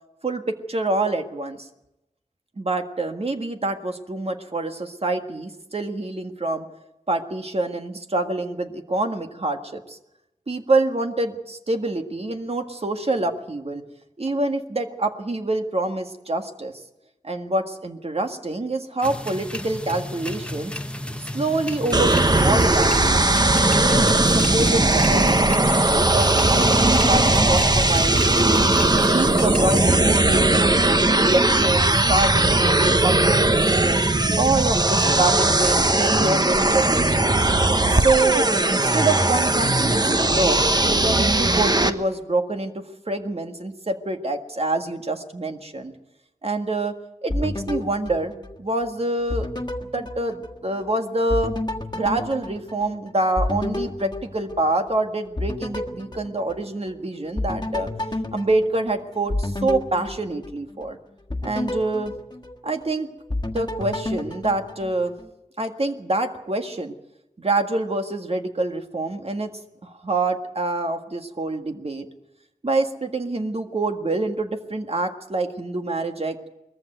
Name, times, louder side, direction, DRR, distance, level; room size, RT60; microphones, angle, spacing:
voice 1, 0.2-1.7 2.6-6.7 7.1-10.0 10.5-13.8 14.2-16.7 17.2-20.8 21.2-23.3 23.8-28.6 29.1-30.7 31.2-34.1 34.4-37.4 37.8-40.6 41.0-45.9 46.4-47.0 47.2-48.3 48.6-49.5 49.9-51.6 51.9-57.9 58.3-61.0 61.4-62.1 62.6-63.1 63.5-65.1 65.6-66.9 67.4-69.5 69.8-72.1 72.6-76.4, right 2 dB, 50° right, 5 dB, 1.8 m, -26 dB
sound 1, 19.0-29.9, left 1 dB, 10° left, 1.1 m, -33 dB
sound 2, 21.9-41.9, right 2 dB, 30° right, 1.1 m, -19 dB
sound 3, 47.3-48.9 49.3-50.9 51.3-55.0 55.4-57.0 57.4-60.8 61.3-62.9 63.3-65.3, left 2 dB, 35° left, 1.6 m, -31 dB
20.5 x 14.0 x 9.2 m, 0.91 s
wide cardioid pair, 50°, 13 cm